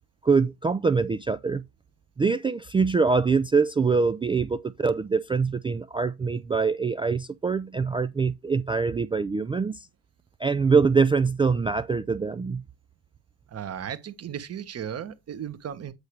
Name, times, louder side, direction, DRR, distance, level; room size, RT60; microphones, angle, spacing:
voice 1, 0.2-1.6 2.2-9.9 10.4-12.6, right 4 dB, 15° right, 0.3 m, -24 dB
voice 2, 13.5-15.9, right 9 dB, 35° right, 1.3 m, -35 dB
8.1 x 6.6 x 3.2 m
supercardioid pair, 90°, 43 cm